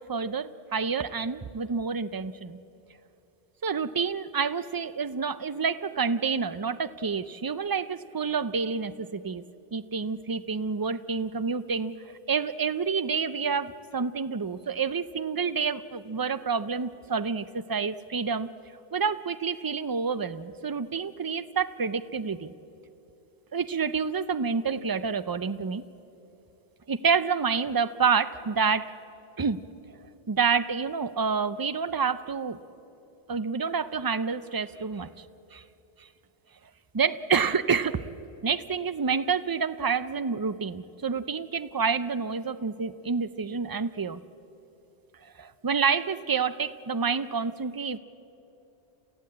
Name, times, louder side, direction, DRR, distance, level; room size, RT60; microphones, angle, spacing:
voice 1, 0.0-2.6 3.6-9.4 9.7-11.9 12.3-18.5 18.9-22.5 23.5-25.8 26.9-28.9 29.4-29.6 30.3-32.6 33.3-35.1 35.5-35.6 36.9-38.0 38.4-44.2 45.4-48.0, right 5 dB, 40° right, 14 dB, 0.3 m, -28 dB
29.0 x 15.0 x 8.7 m, 2.9 s
omnidirectional pair, 1.2 m